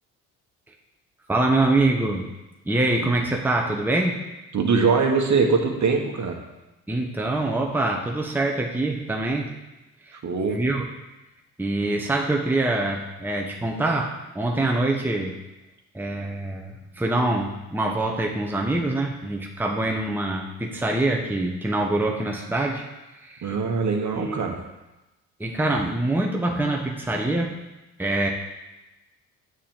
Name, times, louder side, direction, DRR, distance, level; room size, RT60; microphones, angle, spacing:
voice 1, 1.3-2.3 2.6-4.2 6.9-9.5 10.1-10.2 10.5-10.8 11.6-15.4 15.9-22.8 23.2-23.6 24.1-24.5 25.4-27.6 28.0-28.3, right 2 dB, 5° right, 0 dB, 1.2 m, -24 dB
voice 2, 4.5-6.4 10.2-10.6 23.4-24.6, right 5 dB, 40° right, 2 dB, 1.5 m, -22 dB
8.7 x 6.5 x 3.8 m, 1.0 s
hypercardioid pair, 55°, 42 cm